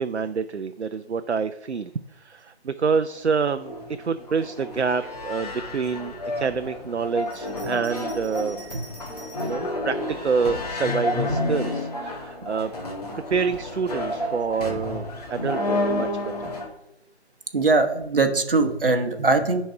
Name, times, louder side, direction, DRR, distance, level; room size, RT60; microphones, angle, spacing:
voice 1, 0.0-8.6 9.4-12.7 13.3-16.5, right 5 dB, 80° right, 10 dB, 0.6 m, -27 dB
sound 1, 3.1-16.7, left 1 dB, 35° left, 1.7 m, -30 dB
Bell, 7.2-9.7 10.4-11.3, right 1 dB, 5° left, 2.9 m, -47 dB
voice 2, 17.5-19.6, right 3 dB, 55° right, 6 dB, 1.2 m, -21 dB
10.0 x 4.2 x 4.7 m, 0.87 s
figure-of-eight pair, 160°, 33 cm